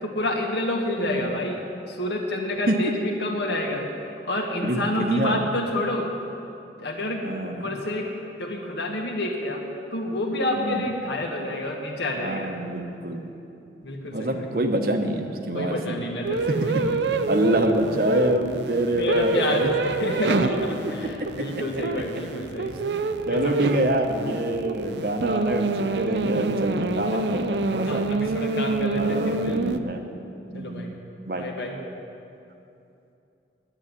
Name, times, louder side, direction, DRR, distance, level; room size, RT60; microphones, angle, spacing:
voice 1, 0.0-1.6 1.9-3.8 4.2-6.1 6.8-8.1 8.4-9.6 9.9-12.5 13.8-14.5 15.5-17.0 19.0-22.8 23.3-23.7 27.1-27.3 27.9-29.6 30.5-30.9 31.4-31.7, left 1 dB, 70° left, 1 dB, 1.8 m, -29 dB
voice 2, 4.6-5.5 7.2-7.8 10.6-10.9 12.2-13.4 14.1-16.0 16.5-17.0 17.3-19.7 20.3-20.4 20.9-21.8 22.1-22.2 23.2-28.1 29.0-30.0 30.5-30.9 31.3-31.5, right 1 dB, 55° right, 5 dB, 1.0 m, -26 dB
sound 1, 16.2-29.8, right 3 dB, 75° right, 0.5 m, -27 dB
10.0 x 9.1 x 9.6 m, 2.7 s
head